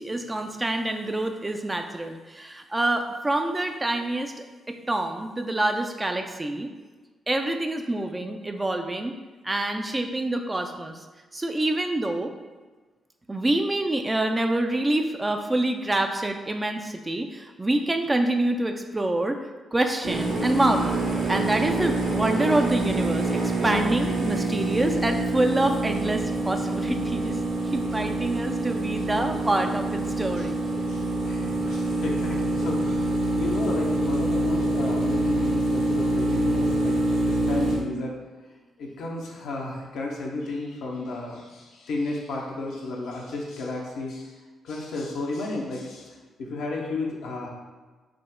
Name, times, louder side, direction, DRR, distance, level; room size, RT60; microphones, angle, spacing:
voice 1, 0.0-4.3 4.7-6.7 7.3-9.1 9.4-11.0 11.3-12.3 13.3-19.4 19.7-27.4 27.6-30.6, right 1 dB, 25° right, 5 dB, 0.4 m, -26 dB
sound 1, 20.0-37.8, right 2 dB, 70° right, 1.0 m, -26 dB
voice 2, 30.9-37.0 37.2-38.2 38.8-44.4 44.6-47.5, left 2 dB, 70° left, -2 dB, 0.8 m, -33 dB
4.9 x 2.1 x 3.6 m, 1.3 s
hypercardioid pair, 40°, 0 cm